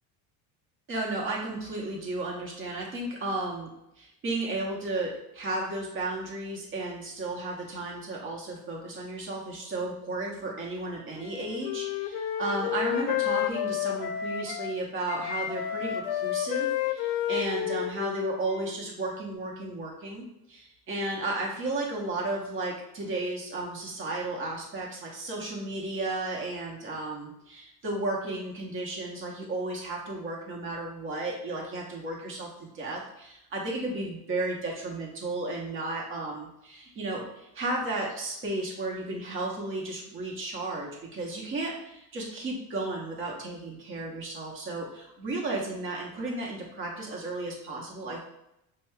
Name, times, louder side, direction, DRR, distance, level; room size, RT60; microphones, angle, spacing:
voice 1, 0.9-3.7 4.0-48.2, right 2 dB, 30° right, -2 dB, 0.9 m, -34 dB
Wind instrument woodwind instrument, 11.2-14.7 15.1-18.8, left 11 dB, 75° left, 0.5 m, -31 dB
6.0 x 2.2 x 2.2 m, 0.84 s
cardioid pair, 145°, 40 cm